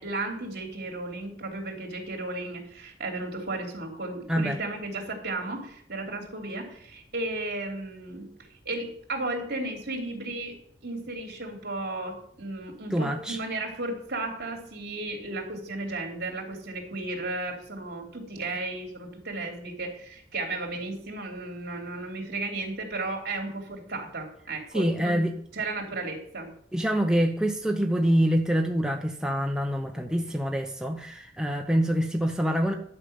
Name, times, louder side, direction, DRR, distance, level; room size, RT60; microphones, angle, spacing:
voice 1, 0.0-8.3 8.6-10.5 10.8-25.2 25.5-26.5, right 2 dB, 60° right, 1 dB, 3.1 m, -34 dB
voice 2, 12.9-13.4 24.7-25.3 26.7-32.7, equal, 5° right, 2 dB, 0.8 m, -25 dB
12.0 x 5.4 x 7.9 m, 0.64 s
head